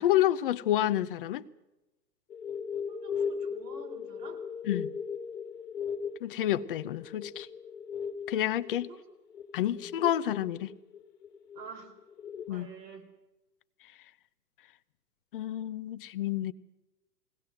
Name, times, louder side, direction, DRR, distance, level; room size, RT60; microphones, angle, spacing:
voice 1, 0.0-1.4 4.6-4.9 6.2-7.5 8.3-8.9 9.5-10.7 12.5-12.7 15.3-16.5, left 12 dB, 35° left, 13 dB, 0.6 m, -29 dB
sound 1, 2.3-12.5, left 6 dB, 65° left, 1.9 m, -38 dB
voice 2, 2.9-4.4 8.9-9.0 9.6-9.9 11.6-11.9 12.5-13.1, right 6 dB, 70° right, 4 dB, 4.4 m, -48 dB
21.5 x 18.0 x 7.8 m, 1.0 s
hypercardioid pair, 145°, 50 cm